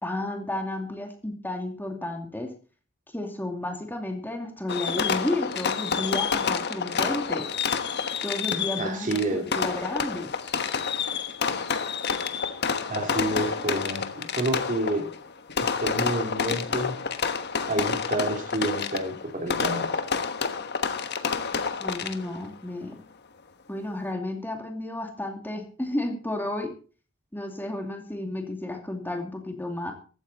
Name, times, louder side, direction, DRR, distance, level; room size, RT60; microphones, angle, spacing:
voice 1, 0.0-2.5 3.1-7.5 8.2-10.4 21.8-23.0 23.7-26.7 27.3-29.9, left 1 dB, 10° left, 3 dB, 2.5 m, -32 dB
Fireworks, 4.7-22.5, left 6 dB, 55° left, 1.2 m, -29 dB
voice 2, 8.8-9.4 12.9-15.1 15.6-17.0 17.7-20.0, right 2 dB, 40° right, 4 dB, 2.9 m, -29 dB
15.0 x 13.5 x 4.1 m, 0.37 s
head